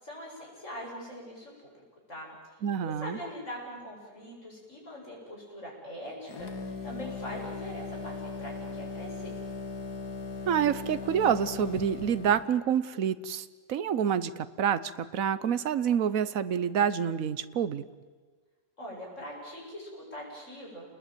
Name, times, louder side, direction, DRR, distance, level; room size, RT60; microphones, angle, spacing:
voice 1, 0.0-1.5 2.1-2.3 2.8-8.1 8.4-9.3 18.8-20.8, equal, 50° left, -2 dB, 8.6 m, -42 dB
voice 2, 2.6-3.2 10.5-14.3 14.6-14.8 15.1-17.8, right 8 dB, 60° right, 14 dB, 1.3 m, -27 dB
sound 1, 6.3-12.5, left 4 dB, 85° left, 2.4 m, -38 dB
29.0 x 20.5 x 9.2 m, 1.5 s
omnidirectional pair, 1.7 m